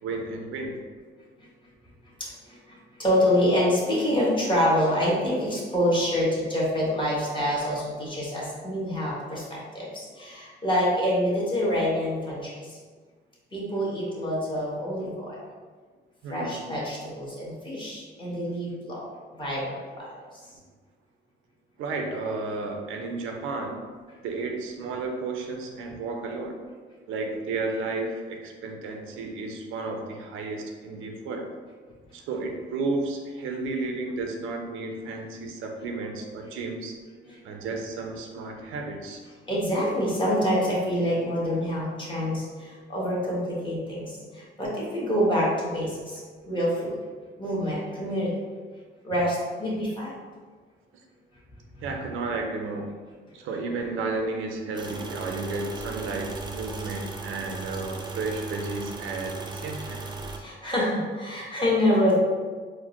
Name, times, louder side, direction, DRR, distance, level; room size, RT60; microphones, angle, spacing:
voice 1, 0.0-0.8 16.2-16.6 21.8-23.9 24.2-26.5 27.1-31.5 32.1-37.0 37.4-39.2 51.8-52.9 53.3-60.0, right 3 dB, 85° right, 3 dB, 0.5 m, -32 dB
voice 2, 2.7-12.5 13.5-15.3 16.3-19.0 19.3-20.1 37.3-37.4 39.5-47.0 47.4-48.3 49.0-50.1 60.4-62.2, equal, 25° left, -6 dB, 1.3 m, -26 dB
sound 1, 54.7-60.4, right 3 dB, 20° right, 0.4 m, -37 dB
4.2 x 2.1 x 2.9 m, 1.5 s
cardioid pair, 90°, 20 cm